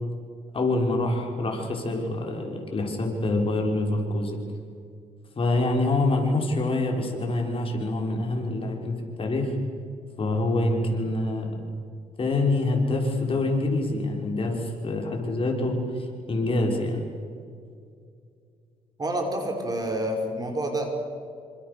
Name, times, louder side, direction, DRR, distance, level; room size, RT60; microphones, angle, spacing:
voice 1, 0.5-4.4 5.4-9.6 10.2-11.6 12.2-17.0, left 2 dB, 40° left, 1 dB, 5.9 m, -26 dB
voice 2, 19.0-20.9, right 1 dB, 25° right, 3 dB, 5.8 m, -28 dB
28.0 x 26.5 x 7.0 m, 2.3 s
cardioid pair, 90°, 14 cm